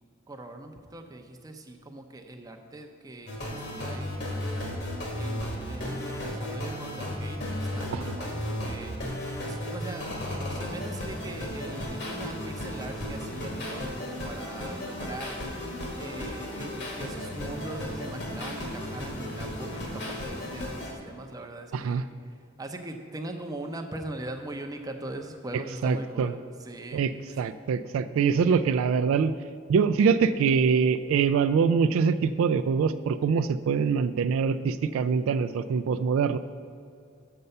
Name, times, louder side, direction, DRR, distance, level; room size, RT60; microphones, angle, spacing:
voice 1, 0.3-4.5 5.1-8.9 9.5-10.1 10.5-15.4 16.0-27.4, right 2 dB, 20° right, 4 dB, 0.6 m, -41 dB
sound 1, 3.3-20.9, left 1 dB, 60° left, 1.6 m, -34 dB
voice 2, 21.7-22.0 25.8-26.3 26.9-29.3 29.7-36.4, right 6 dB, 80° right, 11 dB, 0.3 m, -24 dB
6.8 x 6.7 x 5.4 m, 2.4 s
head